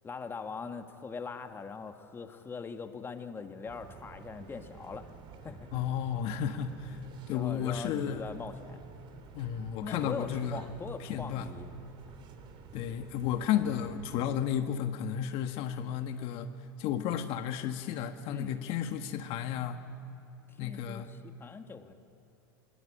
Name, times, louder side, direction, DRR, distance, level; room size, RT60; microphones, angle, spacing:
voice 1, 0.0-5.1 5.4-5.7 7.1-8.8 9.8-11.8 18.3-18.5 20.5-21.9, left 5 dB, 20° left, 7 dB, 1.7 m, -41 dB
sound 1, 3.7-14.3, right 5 dB, 45° right, 3.0 m, -50 dB
voice 2, 5.7-7.0 7.3-8.3 9.3-10.6 11.0-11.5 12.7-16.5 16.8-19.8 20.6-21.1, left 9 dB, 55° left, 7 dB, 1.3 m, -33 dB
21.5 x 20.5 x 8.8 m, 3.0 s
hypercardioid pair, 105°, 11 cm